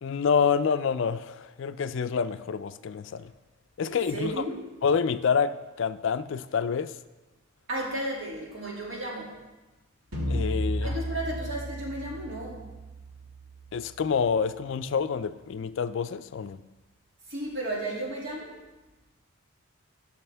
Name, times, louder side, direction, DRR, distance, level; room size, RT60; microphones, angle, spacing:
voice 1, 0.0-3.3 3.8-4.4 4.8-6.9 10.3-10.9 13.7-16.6, left 6 dB, 60° left, 12 dB, 0.3 m, -27 dB
voice 2, 3.8-4.6 7.7-9.3 10.8-12.6 17.3-18.5, right 1 dB, 60° right, -3 dB, 2.3 m, -34 dB
sound 1, 10.1-15.5, equal, 75° right, 2.0 m, -35 dB
15.0 x 6.4 x 3.4 m, 1.1 s
head